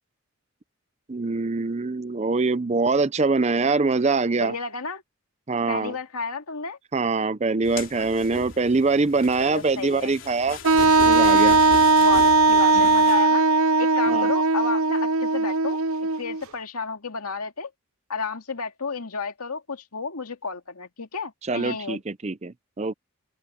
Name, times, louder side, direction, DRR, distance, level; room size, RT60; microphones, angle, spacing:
voice 1, 1.1-4.5 5.5-6.0 6.9-10.6 11.1-11.6 12.7-12.9 14.1-14.3 21.4-22.9, right 3 dB, 30° right, 0.5 m, -24 dB
voice 2, 4.4-5.0 5.7-6.8 9.4-10.1 12.0-15.8 16.2-17.7 18.1-22.0, left 4 dB, 90° left, 2.4 m, -32 dB
sound 1, 7.6-13.2, left 3 dB, 55° left, 3.5 m, -37 dB
Wind instrument woodwind instrument, 10.6-16.4, right 3 dB, 70° right, 0.7 m, -18 dB
open air
head